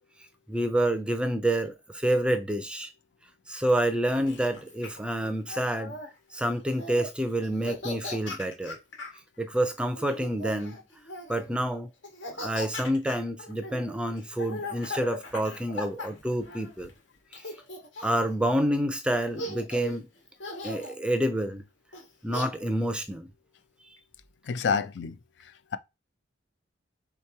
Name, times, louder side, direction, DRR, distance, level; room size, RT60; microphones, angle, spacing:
voice 1, 0.5-2.9 3.5-6.0 6.3-8.8 9.4-10.8 11.3-11.9 12.3-16.9 18.0-20.1 20.6-21.6 22.2-23.3, right 1 dB, 5° right, 0.4 m, -28 dB
Laughter, 3.7-6.1 6.7-7.1 7.4-9.2 10.0-11.5 12.0-16.9 17.3-18.3 18.9-19.0 19.3-20.0 20.4-20.9 21.9-22.4, left 1 dB, 80° left, 1.5 m, -39 dB
voice 2, 24.4-25.2 25.4-25.8, left 6 dB, 65° left, 0.4 m, -29 dB
3.5 x 3.0 x 4.5 m
head